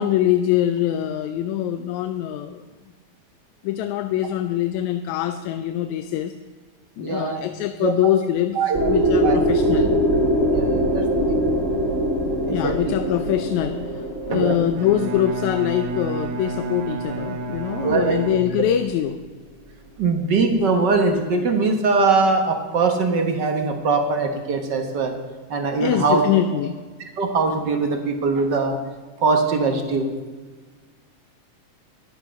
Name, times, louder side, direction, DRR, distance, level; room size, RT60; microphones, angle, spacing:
voice 1, 0.0-2.6 3.6-6.3 7.0-8.6 8.9-9.9 12.5-19.2 25.8-26.8, left 11 dB, 80° left, 9 dB, 1.9 m, -23 dB
voice 2, 7.0-7.4 7.8-7.9 8.5-8.9 9.2-9.4 10.5-11.0 12.5-12.9 14.3-14.7 17.8-18.2 20.0-25.1 25.5-26.2 27.2-28.8 29.2-30.1, right 4 dB, 60° right, 5 dB, 1.2 m, -21 dB
sound 1, 8.7-16.6, right 1 dB, 30° right, 1.9 m, -22 dB
Bowed string instrument, 14.7-19.0, right 4 dB, 75° right, 2.3 m, -30 dB
12.0 x 10.5 x 5.1 m, 1.3 s
omnidirectional pair, 3.4 m